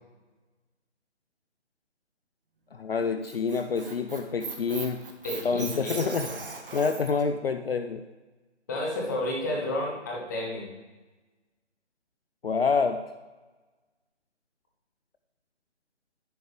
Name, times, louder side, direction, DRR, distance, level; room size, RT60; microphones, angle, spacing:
voice 1, 2.7-5.0 5.4-6.3 6.7-8.0 12.4-13.0, left 5 dB, 55° left, 7 dB, 0.6 m, -27 dB
Squeak, 3.0-7.2, right 4 dB, 50° right, 1.5 m, -39 dB
voice 2, 5.2-6.3 8.7-10.6, left 1 dB, 15° left, -2 dB, 1.1 m, -31 dB
11.0 x 8.4 x 3.4 m, 1.2 s
figure-of-eight pair, 160°, 35 cm